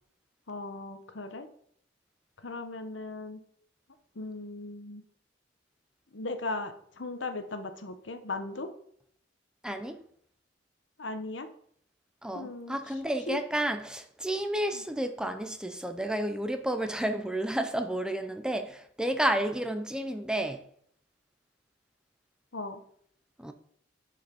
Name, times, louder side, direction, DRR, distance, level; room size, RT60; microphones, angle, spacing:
voice 1, 0.5-1.5 2.4-3.4 4.2-5.0 6.1-8.7 11.0-11.5 12.3-12.8 13.3-13.4 14.7-14.8 22.5-22.8, left 2 dB, 85° left, 1.1 m, -37 dB
voice 2, 9.6-10.0 12.2-20.6 23.4-23.5, right 1 dB, 5° right, 0.7 m, -31 dB
10.5 x 5.3 x 5.3 m
head